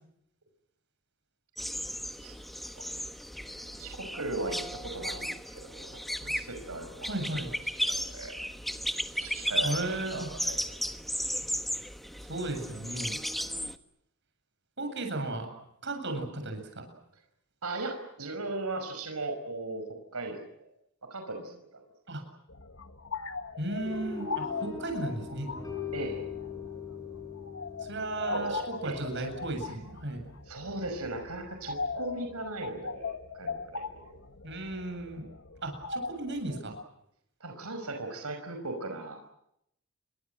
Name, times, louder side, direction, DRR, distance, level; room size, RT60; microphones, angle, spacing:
sound 1, 1.6-13.8, equal, ahead, 1.2 m, -35 dB
voice 1, 3.8-7.3 7.9-8.3 9.2-9.7 10.4-10.6 17.6-20.7 21.1-21.8 25.9-26.3 28.2-29.0 30.5-34.2 37.4-39.2, right 2 dB, 85° right, 5 dB, 5.3 m, -38 dB
voice 2, 7.0-7.5 9.6-10.3 12.2-13.2 14.8-15.5 15.8-16.8 22.1-22.2 23.6-25.5 27.8-30.2 34.4-35.3 35.6-36.8, right 2 dB, 55° right, 5 dB, 7.9 m, -35 dB
sound 2, 22.5-36.8, left 4 dB, 60° left, 1.6 m, -40 dB
sound 3, 23.8-30.0, left 7 dB, 15° left, 6.2 m, -41 dB
29.5 x 24.0 x 7.7 m, 0.77 s
head